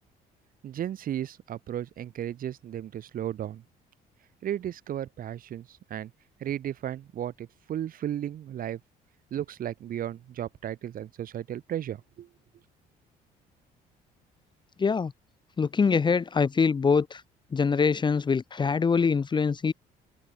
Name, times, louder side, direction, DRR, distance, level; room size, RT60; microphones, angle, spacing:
voice 1, 0.6-3.6 4.4-6.1 6.4-8.8 9.3-12.3, right 11 dB, 55° right, 2.8 m, -34 dB
voice 2, 14.8-15.1 15.6-17.2 17.5-19.7, left 5 dB, 25° left, 1.2 m, -24 dB
cardioid pair, 110°, 17 cm